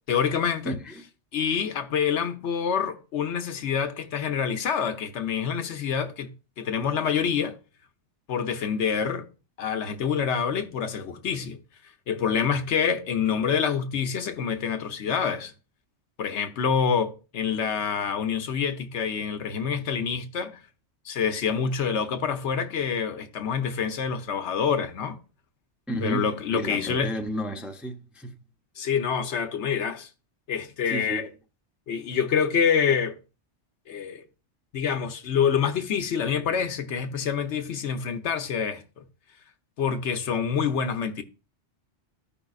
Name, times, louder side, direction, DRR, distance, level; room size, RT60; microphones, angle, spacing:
voice 1, 0.1-0.7 1.3-6.3 6.6-7.6 8.3-9.3 9.6-11.6 12.1-15.5 16.2-20.6 21.0-25.2 26.0-27.1 28.8-30.1 30.5-31.3 31.9-33.2 33.9-34.2 34.7-39.0 39.8-41.2, left 7 dB, 75° left, 1.1 m, -26 dB
voice 2, 0.6-1.1 25.9-28.4 30.9-31.3, equal, ahead, 0.6 m, -32 dB
14.0 x 5.4 x 2.4 m
omnidirectional pair, 1.2 m